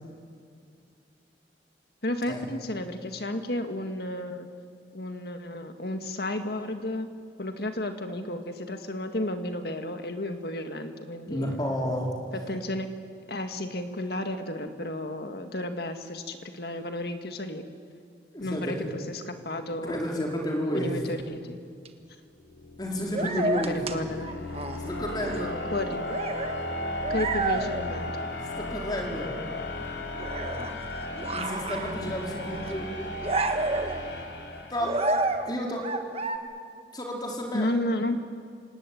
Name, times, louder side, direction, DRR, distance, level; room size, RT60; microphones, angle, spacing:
voice 1, 2.0-4.5 4.9-7.1 7.4-11.6 12.3-12.9 13.3-17.6 18.4-20.1 20.7-21.6 23.2-24.3 25.7-26.2 27.1-28.1 37.5-38.2, left 1 dB, 60° left, 6 dB, 2.0 m, -32 dB
voice 2, 11.3-12.1 18.3-18.9 19.8-21.0 22.8-23.8 24.9-25.5 28.6-29.3 31.3-32.9 34.7-35.0 35.4-35.9 36.9-37.7, equal, 25° left, -1 dB, 4.7 m, -31 dB
sound 1, 21.9-22.0 23.0-24.9 25.2-25.5 25.9-26.7 27.0-27.9 28.2-28.7 28.9-29.5 29.8-29.9 30.1-30.8 31.2-32.2 32.5-32.7 33.0-34.0 34.8-35.5 35.8-36.4, right 2 dB, 35° right, 1.5 m, -30 dB
sound 2, 22.4-35.3, left 2 dB, 90° left, 3.1 m, -35 dB
28.0 x 18.0 x 9.4 m, 2.3 s
head